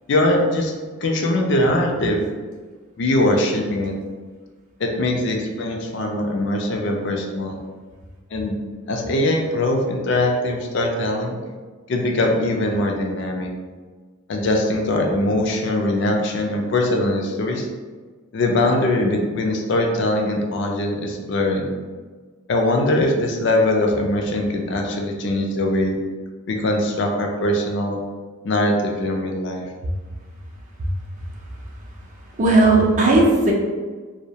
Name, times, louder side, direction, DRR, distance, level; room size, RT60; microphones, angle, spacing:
voice 1, 0.1-0.7 1.0-2.2 3.0-4.0 4.8-7.6 8.3-8.6 8.9-11.4 11.9-13.5 14.3-17.7 18.3-21.7 22.5-26.0 26.5-28.0 28.4-29.7, left 1 dB, 55° left, 1 dB, 0.3 m, -21 dB
voice 2, 32.3-33.5, right 2 dB, 35° right, -2 dB, 0.4 m, -16 dB
2.2 x 2.0 x 2.7 m, 1.4 s
head